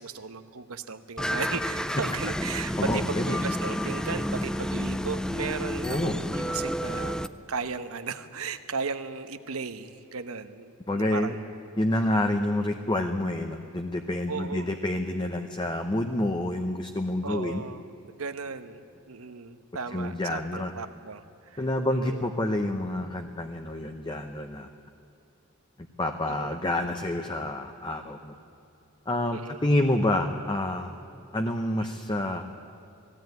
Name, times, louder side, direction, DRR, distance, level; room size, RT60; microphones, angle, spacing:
voice 1, 0.0-7.2 7.5-11.4 14.3-14.7 17.2-17.8 18.1-22.2 26.2-26.5 29.3-29.6, right 4 dB, 80° right, 10 dB, 1.1 m, -36 dB
sound 1, 1.2-7.3, equal, 5° left, 0.4 m, -30 dB
voice 2, 2.5-3.4 5.8-6.2 10.9-11.4 11.8-17.6 19.9-20.7 21.6-24.7 26.0-28.3 29.1-30.9 31.3-32.4, left 1 dB, 20° left, 5 dB, 0.9 m, -28 dB
19.5 x 16.0 x 9.3 m, 2.7 s
head